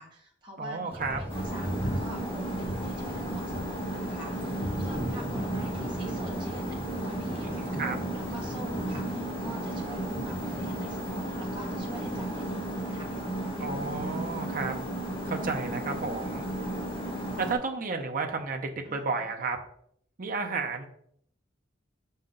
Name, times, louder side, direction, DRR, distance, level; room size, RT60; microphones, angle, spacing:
voice 1, 0.0-13.2 18.8-19.3, right 1 dB, 25° right, -4 dB, 1.6 m, -46 dB
voice 2, 0.6-1.2 7.4-8.0 13.6-14.7 15.3-16.5 17.4-19.6 20.2-20.8, right 4 dB, 45° right, 3 dB, 0.7 m, -32 dB
Thunder, 0.9-12.5, equal, 10° right, 0.8 m, -38 dB
sound 1, 1.3-17.6, right 1 dB, 30° left, 1.4 m, -34 dB
6.6 x 5.6 x 3.8 m, 0.68 s
head